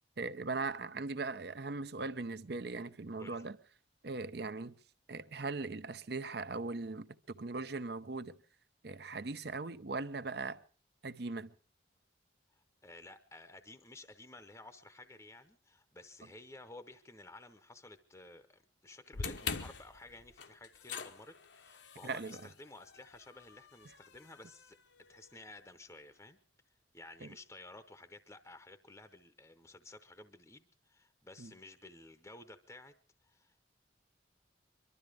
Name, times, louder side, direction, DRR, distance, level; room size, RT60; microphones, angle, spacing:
voice 1, 0.2-3.6 4.0-4.7 5.1-8.4 8.8-10.6 11.0-11.5 22.0-22.4 27.2-27.3 31.4-31.5, right 3 dB, 55° right, 0.7 m, -39 dB
voice 2, 12.5-24.8 25.1-26.4 26.9-32.9 33.2-33.6, left 2 dB, 15° left, 0.8 m, -54 dB
sound 1, 19.1-25.4, left 5 dB, 70° left, 1.0 m, -45 dB
23.5 x 12.5 x 4.9 m
head